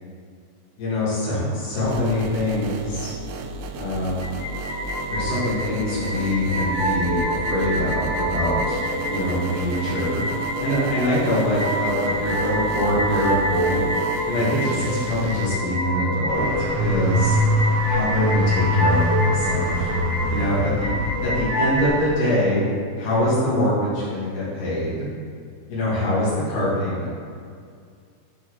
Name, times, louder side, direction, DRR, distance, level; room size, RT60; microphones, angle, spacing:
voice 1, 0.8-3.1 3.8-4.4 5.1-8.8 9.1-10.2 10.6-13.9 14.3-17.4 17.9-19.9 20.3-20.9 21.2-22.7 23.0-25.1 25.7-27.3, left 1 dB, 80° left, -9 dB, 4.0 m, -24 dB
sound 1, 1.9-15.5, right 3 dB, 80° right, 1.5 m, -33 dB
sound 2, 4.2-21.9, right 1 dB, 50° left, 1.5 m, -27 dB
sound 3, 16.3-22.2, equal, 50° right, 1.1 m, -24 dB
12.0 x 4.4 x 4.7 m, 2.2 s
omnidirectional pair, 3.7 m